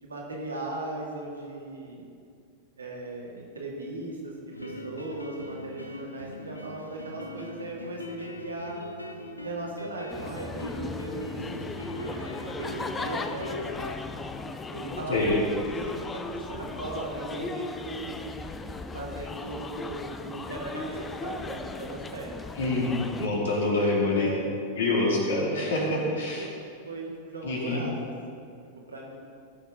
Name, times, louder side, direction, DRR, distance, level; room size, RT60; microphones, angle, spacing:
voice 1, 0.0-2.0 2.8-8.8 9.4-11.7 12.0-13.5 14.7-18.4 18.9-22.3 24.1-24.6 25.5-26.5 26.9-28.1 28.9-29.2, right 2 dB, 75° right, -2 dB, 2.1 m, -38 dB
sound 1, 4.5-14.0, equal, 85° left, 0.7 m, -40 dB
sound 2, 10.1-23.3, left 3 dB, 15° left, 0.5 m, -37 dB
voice 2, 22.6-24.3 24.8-26.5 27.4-27.8, left 2 dB, 65° left, -3 dB, 2.4 m, -26 dB
16.0 x 6.6 x 3.8 m, 2.4 s
figure-of-eight pair, 90°, 0 cm